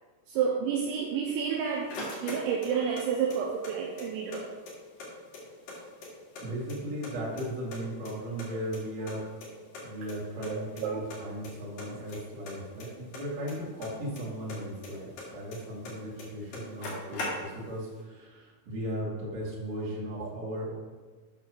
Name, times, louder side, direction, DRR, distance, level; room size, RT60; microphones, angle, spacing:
voice 1, 0.3-4.5 9.0-9.1 10.4-11.1 20.2-20.6, right 7 dB, 80° right, -1 dB, 2.8 m, -31 dB
sound 1, 1.3-3.0 3.3-4.4 4.7-4.8 5.0-6.4 6.7-7.4 7.7-9.1 9.4-9.5 9.7-9.8 10.1-10.2 10.4-10.8 11.1-11.5 11.8-14.2 14.5-15.9 16.2-16.3 16.5-17.7, left 2 dB, 55° left, 3.2 m, -40 dB
voice 2, 6.4-9.2 9.8-20.7, equal, 40° right, -6 dB, 2.9 m, -37 dB
9.3 x 3.8 x 6.4 m, 1.3 s
omnidirectional pair, 5.7 m